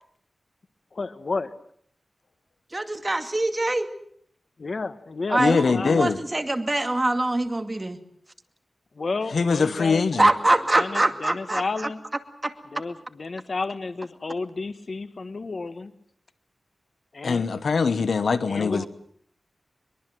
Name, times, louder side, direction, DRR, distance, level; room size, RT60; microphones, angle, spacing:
voice 1, 0.9-1.5 4.6-6.1 8.9-12.0 12.7-15.9 17.1-17.4 18.5-18.9, left 3 dB, 55° left, 1.4 m, -32 dB
voice 2, 2.7-3.9 5.3-8.0 10.2-11.6 12.4-12.5 18.7-18.9, right 2 dB, 25° right, 2.3 m, -23 dB
voice 3, 5.4-6.2 9.3-10.3 17.2-18.9, left 5 dB, 80° left, 1.2 m, -22 dB
23.5 x 22.5 x 7.7 m
wide cardioid pair, 95°, 0 cm